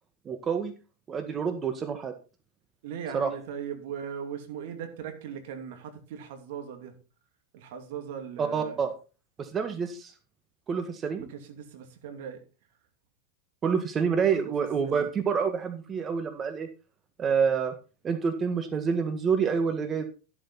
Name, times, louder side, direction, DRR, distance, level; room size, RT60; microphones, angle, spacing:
voice 1, 0.2-0.7 1.1-2.1 3.1-3.3 8.4-8.9 9.4-10.1 10.7-11.3 13.6-16.7 17.2-17.7 18.0-20.1, right 6 dB, 30° right, 7 dB, 1.6 m, -27 dB
voice 2, 2.8-6.9 7.5-8.8 11.3-12.4 14.3-14.5 14.8-15.1, right 8 dB, 70° right, 7 dB, 2.8 m, -39 dB
13.0 x 7.9 x 4.3 m, 0.33 s
hypercardioid pair, 110°, 0 cm